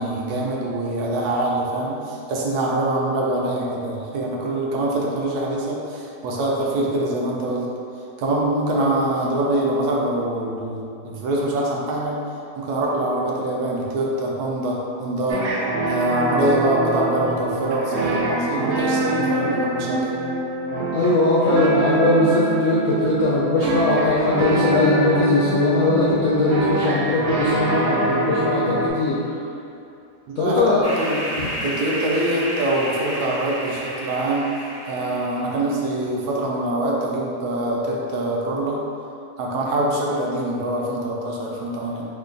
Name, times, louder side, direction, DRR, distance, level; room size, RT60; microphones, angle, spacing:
voice 1, 0.0-7.7 8.2-12.2 12.6-15.5 15.9-20.0 30.3-31.2 31.6-34.5 34.9-38.8 39.4-42.0, right 1 dB, 70° right, -3 dB, 1.0 m, -24 dB
sound 1, 15.3-28.9, right 1 dB, 90° right, 0.6 m, -23 dB
voice 2, 20.9-29.3 30.4-30.9 31.4-31.5, left 2 dB, 80° left, -8 dB, 0.6 m, -20 dB
sound 2, 30.8-35.6, equal, 30° right, 0.8 m, -31 dB
3.2 x 2.2 x 3.7 m, 2.6 s
omnidirectional pair, 1.8 m